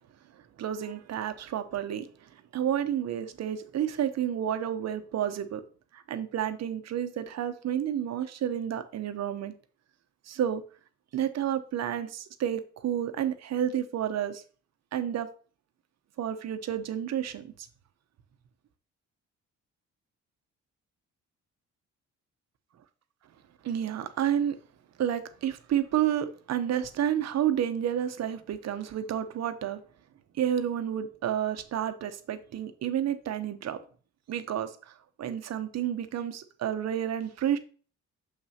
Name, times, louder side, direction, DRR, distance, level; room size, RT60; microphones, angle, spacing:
voice 1, 0.6-5.6 5.9-9.5 10.3-10.6 11.1-14.4 14.9-15.3 16.2-17.7 23.6-24.6 25.0-29.8 30.3-33.8 34.3-34.9 35.2-37.6, right 10 dB, 60° right, 0.8 m, -30 dB
6.7 x 5.7 x 2.8 m
cardioid pair, 90°, 30 cm